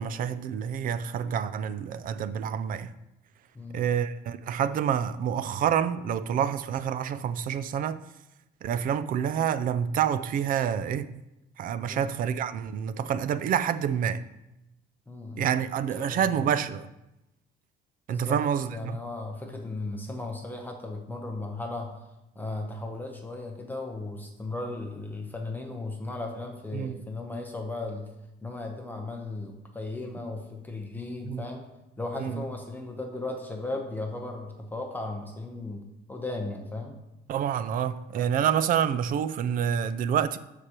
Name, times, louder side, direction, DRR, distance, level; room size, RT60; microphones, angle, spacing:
voice 1, 0.0-2.9 3.7-8.0 8.6-11.1 11.6-14.2 15.4-16.9 18.1-19.0 26.7-26.9 31.2-31.4 32.2-32.4 37.3-40.4, right 8 dB, 45° right, 0.4 m, -28 dB
voice 2, 15.1-15.5 16.0-16.5 18.1-18.4 18.7-22.0 22.4-28.1 28.4-31.7 32.0-37.0, left 2 dB, 10° left, 0.7 m, -36 dB
13.0 x 4.9 x 2.9 m
cardioid pair, 160°, 20 cm